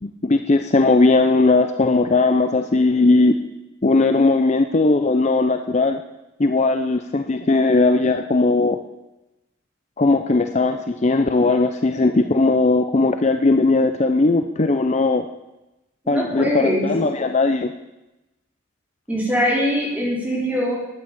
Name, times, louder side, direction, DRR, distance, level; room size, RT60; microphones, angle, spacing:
voice 1, 0.0-3.3 3.8-6.0 6.4-8.8 10.0-15.3 16.1-17.7, left 3 dB, 35° left, 7 dB, 0.6 m, -18 dB
voice 2, 16.1-16.9 19.1-20.8, equal, 10° right, -4 dB, 4.0 m, -22 dB
13.0 x 9.1 x 8.8 m, 0.99 s
head